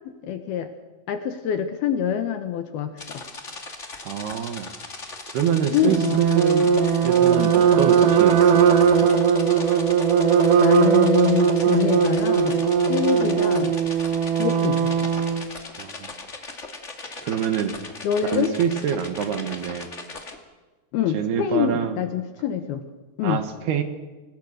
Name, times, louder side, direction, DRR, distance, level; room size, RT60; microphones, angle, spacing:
voice 1, 0.2-0.7 1.1-3.2 5.7-6.2 10.6-13.7 14.3-14.9 18.0-18.5 20.9-22.8 23.2-23.4, left 9 dB, 70° left, 8 dB, 2.6 m, -25 dB
sound 1, 3.0-20.4, left 3 dB, 45° left, 0.9 m, -39 dB
voice 2, 4.1-4.7 5.3-6.7 7.0-9.1 15.8-16.1 17.2-17.7 18.2-19.9 21.1-22.0 23.2-23.8, right 9 dB, 65° right, 8 dB, 3.0 m, -26 dB
sound 2, 5.8-15.4, right 7 dB, 90° right, 1.8 m, -19 dB
27.5 x 19.5 x 6.5 m, 1.3 s
omnidirectional pair, 5.5 m